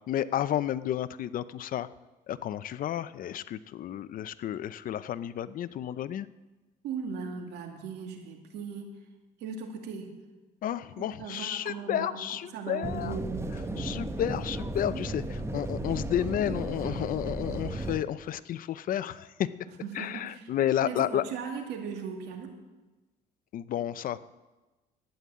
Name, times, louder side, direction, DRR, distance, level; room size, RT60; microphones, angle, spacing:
voice 1, 0.1-1.9 2.3-6.3 10.6-13.2 13.8-19.5 19.9-21.2 23.5-24.2, left 11 dB, 55° left, 16 dB, 0.6 m, -31 dB
voice 2, 6.8-8.9 9.4-10.1 10.9-13.3 19.8-20.5 20.8-22.5, right 6 dB, 85° right, 3 dB, 2.4 m, -38 dB
sound 1, 12.8-18.0, right 2 dB, 15° right, 1.2 m, -34 dB
12.0 x 9.3 x 8.4 m, 1.2 s
cardioid pair, 110°, 17 cm